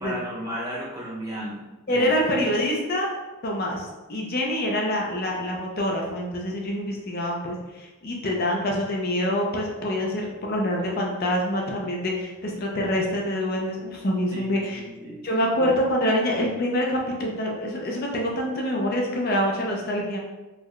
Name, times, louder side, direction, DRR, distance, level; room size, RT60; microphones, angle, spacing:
voice 1, 0.0-1.6 1.9-2.5 14.3-15.2 15.6-15.7, right 1 dB, 15° right, -5 dB, 0.7 m, -34 dB
voice 2, 1.9-3.1 3.4-14.8 15.2-20.2, equal, 45° left, -1 dB, 0.5 m, -26 dB
3.8 x 2.1 x 3.1 m, 1.1 s
head